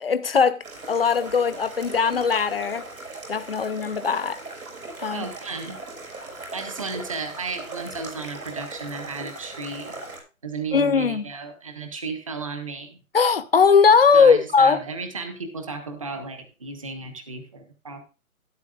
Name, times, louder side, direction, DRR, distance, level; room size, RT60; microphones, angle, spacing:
voice 1, 0.0-2.9 3.3-4.4 5.0-5.2 10.7-11.2 13.1-14.8, left 5 dB, 45° left, 0.7 m, -19 dB
sound 1, 0.6-10.2, right 2 dB, 85° right, 5.9 m, -39 dB
voice 2, 5.1-5.8 6.5-10.0 10.4-13.0 14.1-18.0, right 4 dB, 25° right, 1.2 m, -34 dB
13.0 x 11.0 x 2.4 m
hypercardioid pair, 175°, 42 cm